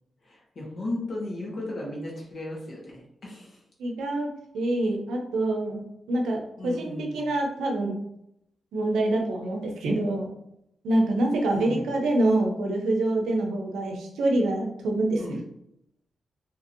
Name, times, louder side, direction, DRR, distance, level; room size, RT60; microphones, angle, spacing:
voice 1, 0.2-3.6 6.6-7.3 11.5-11.9 15.2-15.4, left 1 dB, 60° left, -3 dB, 1.1 m, -35 dB
voice 2, 3.8-8.0 8.7-10.3 10.8-15.2, right 1 dB, 90° right, 2 dB, 0.5 m, -26 dB
2.8 x 2.6 x 2.6 m, 0.78 s
cardioid pair, 65°, 0 cm